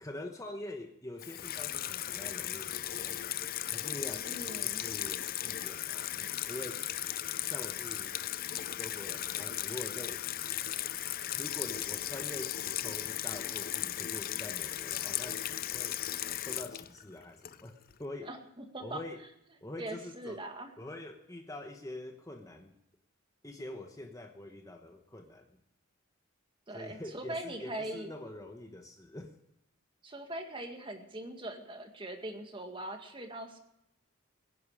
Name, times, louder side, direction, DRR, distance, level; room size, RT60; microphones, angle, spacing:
voice 1, 0.0-3.2 3.7-4.3 4.6-6.8 7.4-8.2 8.8-10.2 11.3-16.0 16.4-18.3 18.8-19.2 19.6-20.4 20.8-22.8 23.4-25.5 26.7-29.4, left 1 dB, 15° left, 4 dB, 1.1 m, -45 dB
Water tap faucet / Sink (filling or washing), 1.2-17.9, left 12 dB, 45° left, 0.5 m, -36 dB
voice 2, 4.3-4.8 18.3-19.0 19.8-20.7 26.7-28.1 30.0-33.6, right 1 dB, 25° right, 5 dB, 1.9 m, -41 dB
22.0 x 10.5 x 5.0 m, 0.83 s
head